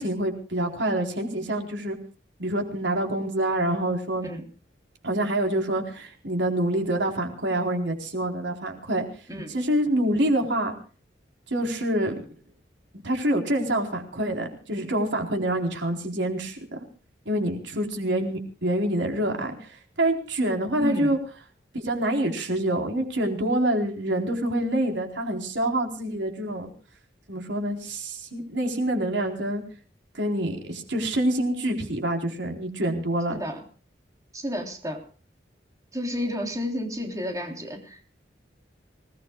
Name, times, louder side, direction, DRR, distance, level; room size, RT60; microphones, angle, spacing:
voice 1, 0.0-2.0 2.4-4.3 5.0-9.1 9.5-10.7 11.5-12.1 13.0-16.6 17.3-19.7 20.0-21.2 21.7-26.7 27.3-29.6 30.1-33.4, right 1 dB, 85° right, 3 dB, 4.2 m, -26 dB
voice 2, 20.8-21.2 33.3-33.7 34.3-35.0 35.9-38.0, left 1 dB, 20° right, 2 dB, 3.6 m, -31 dB
26.5 x 19.0 x 2.4 m, 0.42 s
head